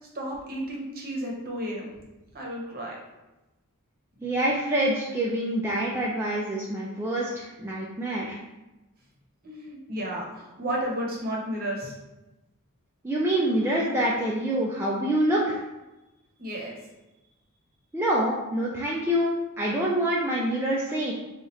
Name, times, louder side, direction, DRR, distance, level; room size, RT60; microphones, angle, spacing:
voice 1, 0.1-1.9 2.3-3.0 9.4-12.0 16.4-16.8, right 1 dB, 40° right, -2 dB, 0.8 m, -32 dB
voice 2, 4.2-8.4 13.0-15.6 17.9-21.1, right 1 dB, 10° right, -5 dB, 0.3 m, -26 dB
3.1 x 2.4 x 4.0 m, 1.0 s
head